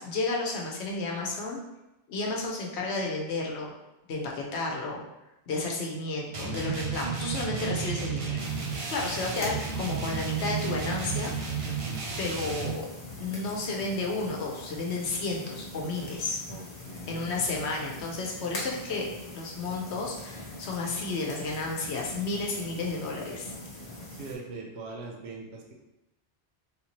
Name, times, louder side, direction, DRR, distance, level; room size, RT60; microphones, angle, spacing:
voice 1, 0.0-1.6 2.1-3.7 4.1-5.0 5.5-8.4 8.9-11.3 12.2-12.9 13.2-16.4 17.1-19.1 19.3-23.5, left 3 dB, 75° left, 0 dB, 0.9 m, -32 dB
sound 1, 6.3-12.8, right 6 dB, 55° right, 0.3 m, -32 dB
sound 2, 8.4-24.3, left 1 dB, 40° left, 0.7 m, -42 dB
voice 2, 16.5-17.3 24.1-25.7, right 3 dB, 70° right, 0 dB, 0.9 m, -41 dB
3.5 x 2.7 x 2.9 m, 0.94 s
omnidirectional pair, 1.2 m